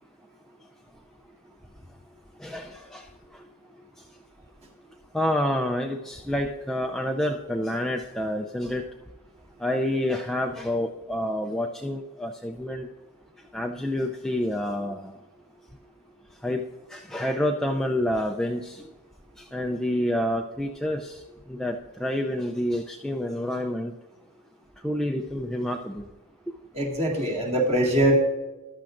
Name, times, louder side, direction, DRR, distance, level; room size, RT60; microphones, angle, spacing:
voice 1, 2.4-3.1 5.1-8.8 9.6-12.9 13.5-15.2 16.4-16.6 16.9-18.8 19.4-21.2 21.5-23.9 24.8-26.1, left 1 dB, ahead, 1 dB, 0.4 m, -28 dB
voice 2, 26.7-28.2, right 1 dB, 30° right, -1 dB, 2.0 m, -22 dB
14.0 x 11.5 x 2.5 m, 1.2 s
head